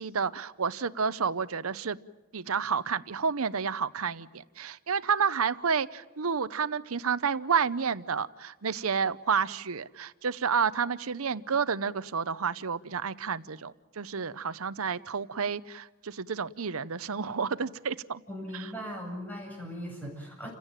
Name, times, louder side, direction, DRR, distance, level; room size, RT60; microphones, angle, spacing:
voice 1, 0.0-2.0 2.3-18.2 18.5-18.7, right 6 dB, 70° right, 15 dB, 0.8 m, -30 dB
voice 2, 18.3-20.5, equal, 10° left, 0 dB, 7.8 m, -39 dB
29.5 x 16.5 x 9.0 m, 1.2 s
head